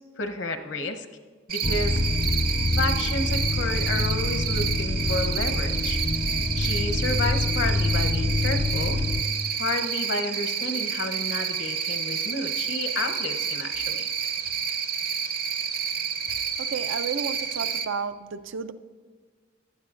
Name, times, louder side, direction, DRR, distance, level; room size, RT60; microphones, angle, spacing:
voice 1, 0.2-1.1 1.5-2.0 2.7-6.0 6.6-9.0 9.6-14.1, left 2 dB, 65° left, 6 dB, 0.8 m, -31 dB
Cricket, 1.5-17.9, right 7 dB, 50° right, 0.7 m, -29 dB
sound 1, 1.6-9.2, left 2 dB, 15° left, 0.4 m, -26 dB
voice 2, 16.6-18.7, right 6 dB, 90° right, 10 dB, 0.5 m, -32 dB
17.5 x 11.5 x 2.5 m, 1.5 s
head